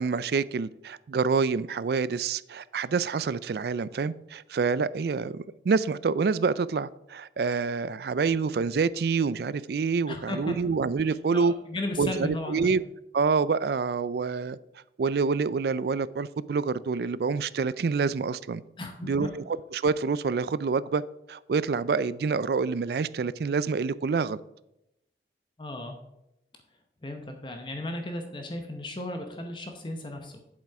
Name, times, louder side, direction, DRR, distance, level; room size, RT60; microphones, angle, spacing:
voice 1, 0.0-11.5 12.0-12.8 13.1-14.6 15.0-18.6 19.0-21.0 21.3-24.4, right 5 dB, 60° right, 0.3 m, -27 dB
voice 2, 10.1-10.8 11.3-12.7 18.8-19.3 25.6-26.0 27.0-30.4, left 2 dB, 25° left, 0.9 m, -35 dB
8.3 x 7.4 x 4.7 m
head